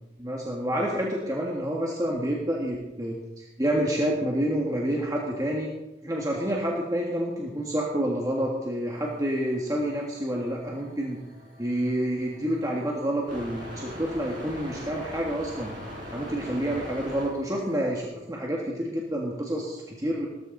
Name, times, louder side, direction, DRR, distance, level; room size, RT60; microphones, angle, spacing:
voice 1, 0.2-5.7 6.0-11.2 11.6-15.7 16.1-20.3, right 1 dB, 20° right, -2 dB, 1.7 m, -28 dB
sound 1, 8.9-17.8, equal, 45° right, 5.8 m, -42 dB
18.0 x 13.0 x 4.0 m, 0.99 s
head